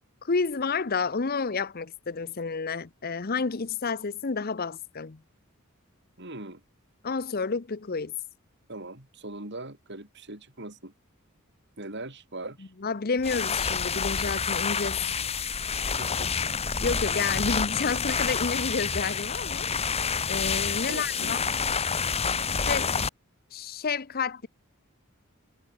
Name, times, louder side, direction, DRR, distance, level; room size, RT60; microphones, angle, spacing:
voice 1, 0.2-5.2 7.0-8.1 12.8-15.4 16.8-19.7 20.3-21.4 22.7-22.9 23.5-24.5, left 4 dB, 45° left, 0.7 m, -30 dB
voice 2, 6.2-6.6 8.7-10.9 11.8-12.7 15.8-16.3 20.9-21.4, right 2 dB, 55° right, 5.4 m, -40 dB
sound 1, 13.2-23.1, left 6 dB, 30° left, 1.5 m, -28 dB
head